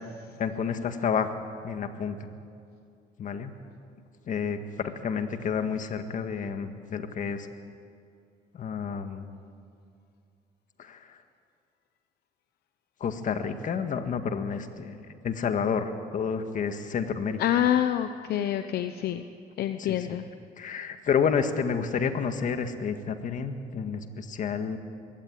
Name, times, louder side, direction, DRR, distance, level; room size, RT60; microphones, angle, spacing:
voice 1, 0.4-1.3 1.6-2.2 3.2-3.6 4.3-7.5 8.5-9.3 10.8-11.2 13.0-17.4 19.8-20.1 20.6-24.8, left 6 dB, 50° left, 8 dB, 1.8 m, -30 dB
voice 2, 17.4-19.3 19.6-20.2, left 11 dB, 70° left, 9 dB, 0.9 m, -26 dB
22.5 x 17.0 x 9.3 m, 2.4 s
cardioid pair, 110°, 17 cm